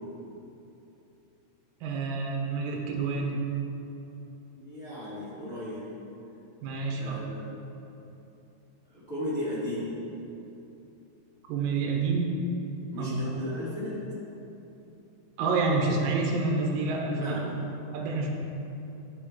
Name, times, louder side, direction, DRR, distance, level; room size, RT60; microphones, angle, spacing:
voice 1, 1.8-3.4 6.6-7.2 11.5-12.4 13.0-13.2 15.4-17.4 17.9-18.3, right 3 dB, 70° right, 0 dB, 2.2 m, -28 dB
voice 2, 4.5-5.9 6.9-7.6 8.9-10.1 12.9-14.0 17.1-17.7, left 1 dB, 75° left, -12 dB, 0.5 m, -36 dB
12.0 x 4.3 x 4.6 m, 2.9 s
omnidirectional pair, 4.9 m